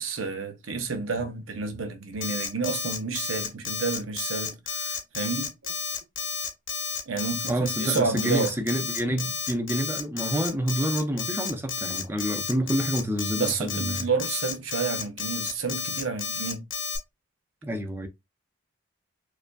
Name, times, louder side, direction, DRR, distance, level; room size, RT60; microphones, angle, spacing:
voice 1, 0.0-5.7 7.1-8.5 13.3-16.6, right 4 dB, 80° right, 0.8 m, -30 dB
Alarm, 2.2-17.0, left 6 dB, 75° left, 0.9 m, -31 dB
voice 2, 7.5-14.1 17.6-18.1, equal, 10° right, 0.5 m, -28 dB
4.7 x 2.5 x 2.3 m
head